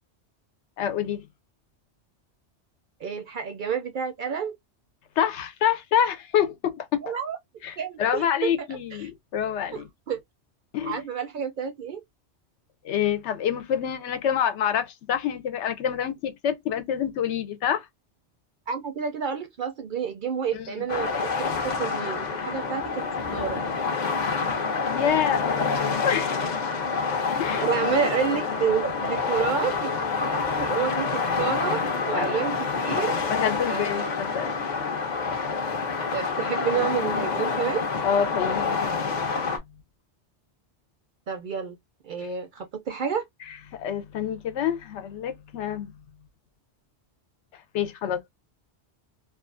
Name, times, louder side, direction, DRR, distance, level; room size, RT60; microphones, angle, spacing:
voice 1, 0.8-1.3 5.2-7.1 7.6-9.9 10.7-11.0 12.8-17.9 20.5-20.8 24.9-26.5 27.4-27.7 32.1-32.3 33.3-34.6 38.0-39.3 43.7-45.9 47.7-48.2, left 9 dB, 85° left, 0.9 m, -27 dB
voice 2, 3.0-4.6 7.0-7.4 7.8-8.5 9.0-9.1 9.7-10.2 10.8-12.0 18.7-23.0 23.3-23.6 27.6-31.8 32.1-33.1 33.7-34.1 36.1-37.8 41.3-41.8 42.0-43.2, right 7 dB, 60° right, 0.6 m, -29 dB
sound 1, 20.9-39.6, left 5 dB, 50° left, 0.6 m, -27 dB
2.4 x 2.4 x 2.4 m
omnidirectional pair, 1.2 m